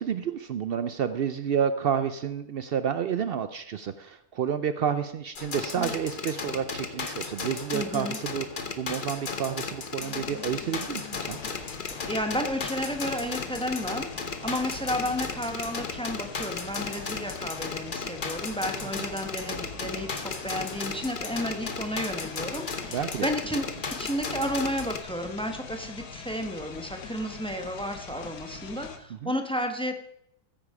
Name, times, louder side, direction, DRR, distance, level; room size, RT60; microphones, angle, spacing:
voice 1, 0.0-11.4 22.9-23.3 29.1-29.3, right 8 dB, 90° right, 12 dB, 0.5 m, -30 dB
sound 1, 5.4-25.0, left 4 dB, 35° left, 1.1 m, -35 dB
voice 2, 7.7-8.2 11.6-11.7 12.1-30.0, equal, 5° left, 6 dB, 1.0 m, -32 dB
sound 2, 10.0-29.0, left 5 dB, 70° left, 1.7 m, -43 dB
15.0 x 8.9 x 4.9 m, 0.78 s
omnidirectional pair, 1.7 m